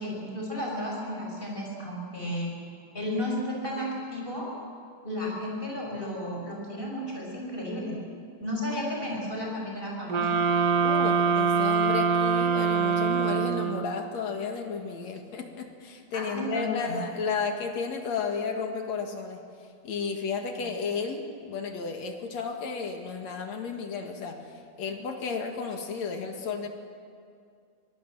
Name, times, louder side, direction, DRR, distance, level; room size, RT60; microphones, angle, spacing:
voice 1, 0.0-2.5 2.9-4.5 5.0-8.0 8.4-10.3 16.1-17.0, left 1 dB, 15° left, -2 dB, 6.0 m, -33 dB
sound 1, 10.1-14.0, right 6 dB, 60° right, 0.9 m, -24 dB
voice 2, 10.8-26.7, left 5 dB, 60° left, 4 dB, 2.9 m, -33 dB
23.5 x 19.0 x 7.7 m, 2.3 s
omnidirectional pair, 3.6 m